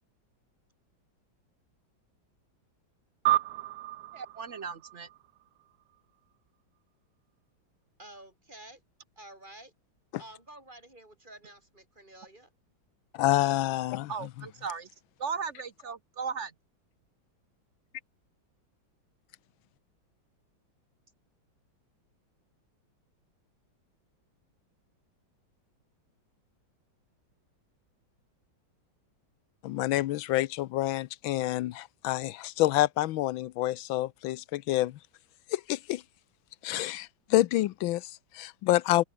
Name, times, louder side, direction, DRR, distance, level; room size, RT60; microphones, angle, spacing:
sound 1, 3.2-6.0, right 15 dB, 75° right, 0.9 m, -32 dB
voice 1, 4.1-5.1 14.1-14.9 15.2-16.5, right 6 dB, 45° right, 1.1 m, -36 dB
voice 2, 8.0-8.8 9.2-9.7 10.2-12.5, right 1 dB, 25° right, 5.2 m, -50 dB
voice 3, 13.1-14.1 29.6-35.0 35.5-36.0 36.6-39.0, left 15 dB, 80° left, 1.4 m, -28 dB
omnidirectional pair, 2.2 m